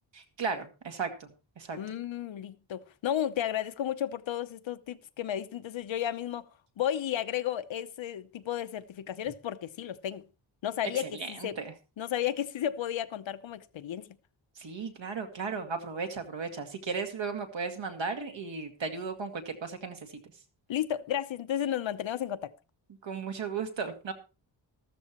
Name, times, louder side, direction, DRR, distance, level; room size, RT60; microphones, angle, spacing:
voice 1, 0.1-1.3 1.6-1.8 11.0-11.7 14.6-20.0 23.0-24.1, right 5 dB, 70° right, 2.3 m, -35 dB
voice 2, 1.7-6.4 6.8-10.2 10.6-11.6 12.0-14.2 20.7-22.5, left 10 dB, 75° left, 0.9 m, -33 dB
14.0 x 13.5 x 3.0 m
wide cardioid pair, 135°, 47 cm